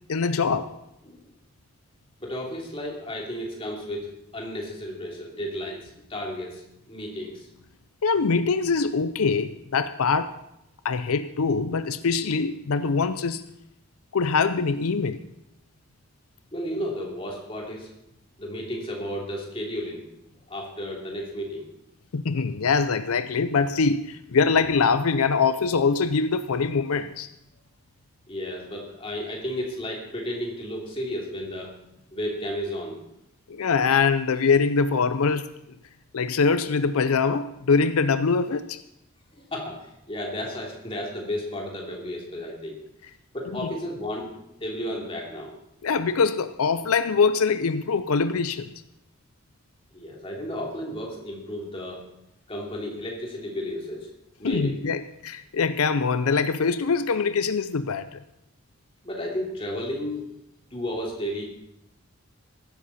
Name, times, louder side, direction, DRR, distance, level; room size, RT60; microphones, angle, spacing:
voice 1, 0.1-0.7 8.0-10.3 10.8-13.4 14.1-15.2 22.1-27.3 33.5-35.5 36.1-38.8 43.6-43.7 45.8-48.7 54.4-58.2, left 5 dB, 80° left, 12 dB, 0.5 m, -23 dB
voice 2, 2.2-7.5 16.5-17.9 18.4-20.0 20.5-21.7 28.3-31.7 32.1-33.0 39.3-42.8 43.3-44.3 44.6-45.5 49.9-52.0 52.5-54.1 54.4-54.8 59.0-60.3 60.7-61.5, equal, 25° left, -2 dB, 3.0 m, -33 dB
15.5 x 12.5 x 4.2 m, 0.83 s
head